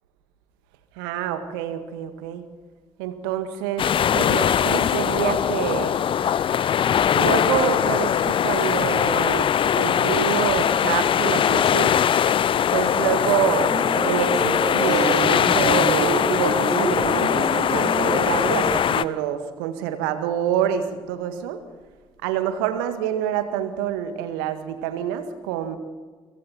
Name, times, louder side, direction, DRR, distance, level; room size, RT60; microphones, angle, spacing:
voice 1, 1.0-2.4 3.0-5.9 7.1-12.0 12.7-21.6 22.2-25.8, right 9 dB, 70° right, 9 dB, 1.9 m, -27 dB
sound 1, 3.8-19.0, left 9 dB, 45° left, 0.8 m, -21 dB
sound 2, 13.7-18.8, right 5 dB, 25° right, 0.6 m, -29 dB
29.5 x 24.5 x 4.4 m, 1.4 s
figure-of-eight pair, 45°, 12 cm